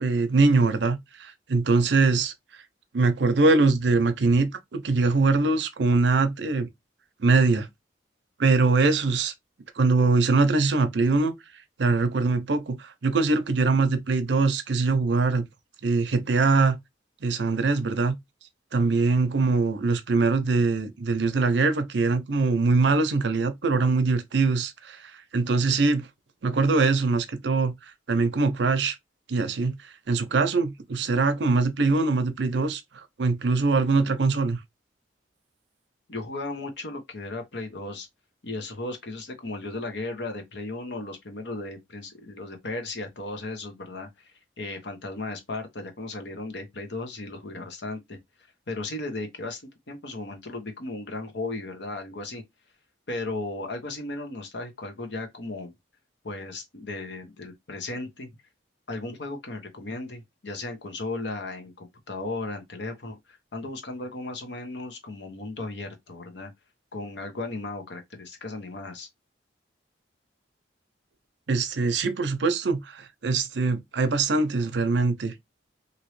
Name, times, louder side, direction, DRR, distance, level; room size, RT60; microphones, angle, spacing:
voice 1, 0.0-2.3 2.9-6.7 7.2-7.7 8.4-9.3 9.8-11.3 11.8-15.5 15.8-16.8 17.2-18.2 18.7-26.1 26.4-27.7 28.1-29.0 29.3-34.6 71.5-75.3, right 3 dB, 70° right, 0.6 m, -23 dB
voice 2, 36.1-38.1 38.4-48.2 48.7-49.6 49.9-52.4 53.1-55.7 56.2-58.3 58.9-66.5 66.9-69.1, left 2 dB, 65° left, 0.9 m, -35 dB
3.0 x 2.6 x 3.1 m
head